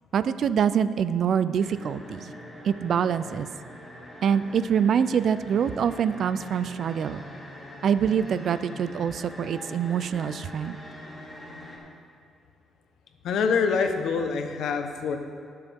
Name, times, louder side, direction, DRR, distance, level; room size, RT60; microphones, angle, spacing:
voice 1, 0.1-2.3 2.6-3.5 4.2-7.2 7.8-10.8, right 8 dB, 60° right, 14 dB, 0.4 m, -25 dB
sound 1, 1.5-11.8, left 1 dB, 10° left, 2.6 m, -43 dB
voice 2, 13.2-15.2, left 5 dB, 75° left, 5 dB, 1.1 m, -25 dB
19.5 x 6.8 x 3.6 m, 2.3 s
cardioid pair, 90°, 0 cm